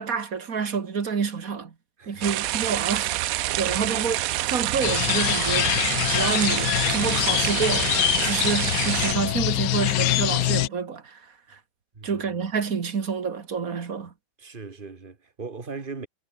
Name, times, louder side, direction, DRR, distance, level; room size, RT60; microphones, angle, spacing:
voice 1, 0.0-1.7 2.1-4.2 4.4-5.7 6.0-11.6 12.0-14.1, right 6 dB, 50° right, 2.1 m, -28 dB
sound 1, 2.2-9.1, right 14 dB, 80° right, 0.7 m, -27 dB
voice 2, 3.6-4.0 11.9-12.3 14.4-16.1, right 4 dB, 25° right, 2.1 m, -39 dB
sound 2, 4.8-10.7, left 15 dB, 75° left, 1.2 m, -24 dB
omnidirectional pair, 2.1 m